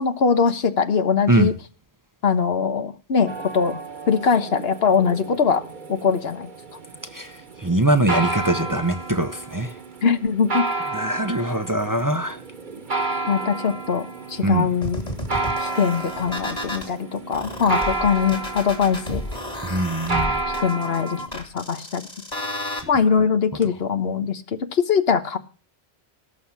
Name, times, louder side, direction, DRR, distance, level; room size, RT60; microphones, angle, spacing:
voice 1, 0.0-1.5 2.2-6.5 10.0-10.7 13.3-15.0 15.6-19.2 20.6-22.1 22.4-22.5 22.9-25.4, left 6 dB, 70° left, 1.3 m, -22 dB
sound 1, 3.3-21.3, right 3 dB, 50° right, 1.4 m, -31 dB
voice 2, 7.1-9.7 10.9-12.4 14.4-14.7 19.6-20.4, right 1 dB, 20° right, 0.8 m, -22 dB
sound 2, 14.8-16.9 17.3-22.8, left 1 dB, 40° left, 3.0 m, -32 dB
17.5 x 6.5 x 7.2 m
omnidirectional pair, 1.1 m